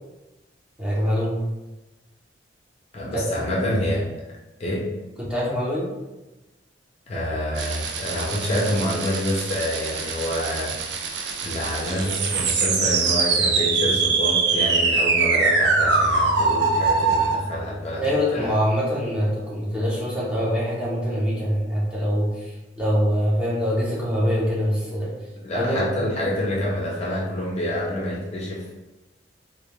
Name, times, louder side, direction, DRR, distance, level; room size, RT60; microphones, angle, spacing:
voice 1, 0.8-1.4 3.1-3.3 5.2-5.9 18.0-25.1 25.5-25.9, equal, 5° right, -7 dB, 0.6 m, -24 dB
voice 2, 2.9-4.1 4.6-4.9 7.1-10.8 11.4-18.0 18.3-18.5 25.4-28.7, equal, 35° left, -4 dB, 0.4 m, -27 dB
sound 1, 7.6-17.3, right 4 dB, 65° right, 0.3 m, -23 dB
2.2 x 2.1 x 3.0 m, 1.1 s
head